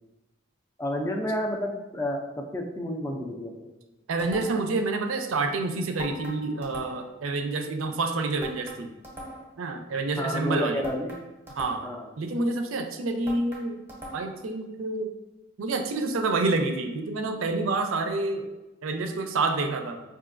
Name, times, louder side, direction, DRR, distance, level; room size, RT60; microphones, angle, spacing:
voice 1, 0.8-3.5 10.1-11.1 11.8-12.1, left 1 dB, 15° left, 2 dB, 0.3 m, -30 dB
voice 2, 4.1-8.9 9.6-10.8 11.6-11.8 12.2-13.8 14.1-15.1 15.6-18.4 18.8-20.0, right 3 dB, 85° right, 6 dB, 0.5 m, -28 dB
sound 1, 4.2-4.8 6.0-7.2 8.4-9.6 10.8-12.1 13.3-14.5, equal, 10° right, 0.7 m, -42 dB
sound 2, 6.0-8.5, left 4 dB, 90° left, 0.5 m, -47 dB
4.8 x 2.6 x 2.5 m, 1.0 s
head